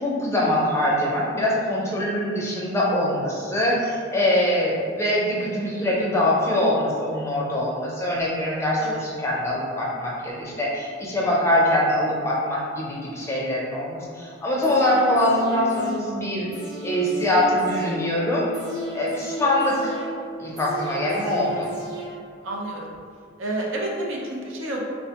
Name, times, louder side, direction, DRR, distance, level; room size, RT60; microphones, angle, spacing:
voice 1, 0.0-18.6 18.9-20.0 20.4-21.7, left 1 dB, 15° left, -4 dB, 0.5 m, -23 dB
sound 1, 14.6-22.6 22.9-23.0, equal, 20° right, 0.8 m, -35 dB
voice 2, 22.4-22.9 23.4-24.9, right 1 dB, 80° right, -2 dB, 0.6 m, -29 dB
4.0 x 2.1 x 2.8 m, 2.1 s
head